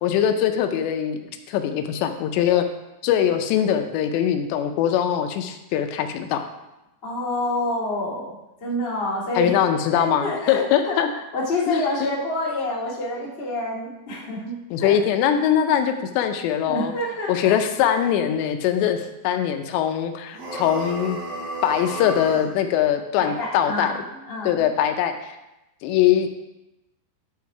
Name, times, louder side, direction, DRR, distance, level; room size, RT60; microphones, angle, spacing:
voice 1, 0.0-1.2 1.5-2.7 3.0-6.4 9.4-11.1 11.7-11.8 14.7-16.9 17.3-21.2 21.6-23.9 24.4-25.4 25.8-26.3, left 9 dB, 85° left, 6 dB, 3.0 m, -22 dB
voice 2, 7.0-8.3 8.6-15.0 16.7-17.6 23.1-24.7, left 1 dB, 45° left, -5 dB, 0.7 m, -28 dB
sound 1, 20.3-22.5, right 1 dB, 55° right, 4.4 m, -32 dB
11.0 x 5.2 x 4.7 m, 0.94 s
omnidirectional pair, 4.9 m